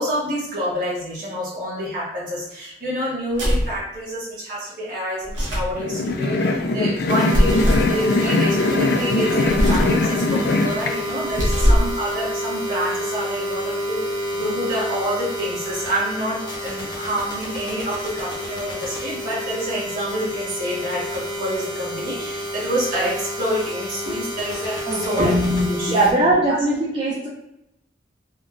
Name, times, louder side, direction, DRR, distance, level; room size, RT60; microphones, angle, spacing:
voice 1, 0.0-26.6, equal, 45° right, -7 dB, 1.4 m, -27 dB
sound 1, 3.3-3.8 5.2-5.8 7.3-7.9 9.5-10.0 11.2-12.0, equal, 85° right, 1.1 m, -20 dB
sound 2, 5.8-10.9, left 2 dB, 55° left, 0.3 m, -21 dB
sound 3, 7.1-26.1, equal, 20° left, 0.7 m, -30 dB
voice 2, 24.9-25.3 25.9-27.3, right 2 dB, 30° right, -6 dB, 0.5 m, -20 dB
3.6 x 2.2 x 2.5 m, 0.85 s
head